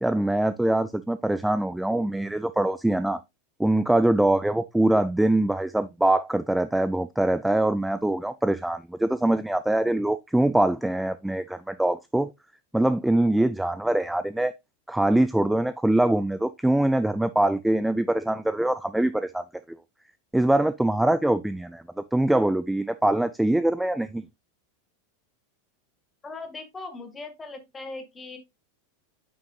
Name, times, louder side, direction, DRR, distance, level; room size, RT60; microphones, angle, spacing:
voice 1, 0.0-3.2 3.6-12.3 12.7-14.5 14.9-19.4 20.3-21.8 22.1-24.2, right 1 dB, 5° right, 0.3 m, -23 dB
voice 2, 26.2-28.4, left 3 dB, 15° left, 1.6 m, -39 dB
8.8 x 5.6 x 2.3 m
figure-of-eight pair, 85°, 0 cm